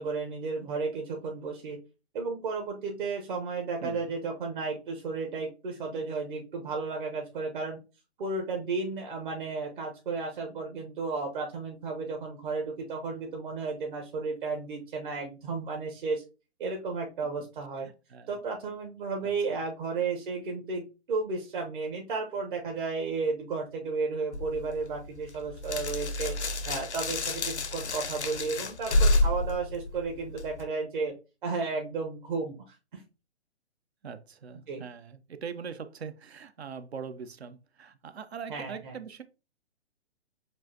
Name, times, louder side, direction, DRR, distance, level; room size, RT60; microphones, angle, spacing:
voice 1, 0.0-1.8 2.1-7.8 8.2-16.2 16.6-17.9 18.3-26.3 26.7-31.1 31.4-33.0 34.7-34.8 38.5-39.0, right 4 dB, 50° right, 1.1 m, -33 dB
voice 2, 3.8-4.2 17.2-17.3 18.1-18.4 19.2-19.3 34.0-39.2, right 6 dB, 65° right, 0.8 m, -42 dB
sound 1, 24.3-30.6, left 2 dB, 80° left, 0.9 m, -29 dB
7.3 x 2.6 x 2.8 m
figure-of-eight pair, 125°, 34 cm